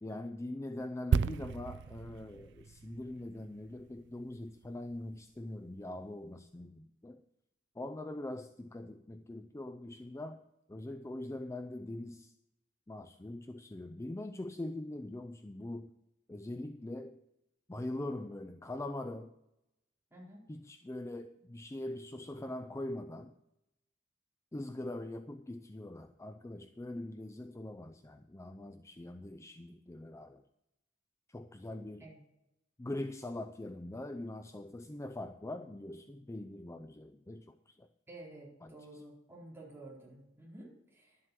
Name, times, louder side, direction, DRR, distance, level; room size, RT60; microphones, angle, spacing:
voice 1, 0.0-7.2 7.8-10.4 10.7-12.3 12.9-15.9 16.3-17.2 17.7-19.3 20.5-23.3 24.5-30.4 31.3-32.1 32.8-37.9 38.6-38.7, left 1 dB, 15° left, 8 dB, 0.4 m, -42 dB
sound 1, 1.1-4.8 5.0-5.2, right 6 dB, 60° right, 0.4 m, -35 dB
voice 2, 20.1-20.5 32.0-32.2 38.1-41.2, right 1 dB, 10° right, -5 dB, 4.1 m, -51 dB
12.0 x 7.7 x 6.7 m, 0.88 s
head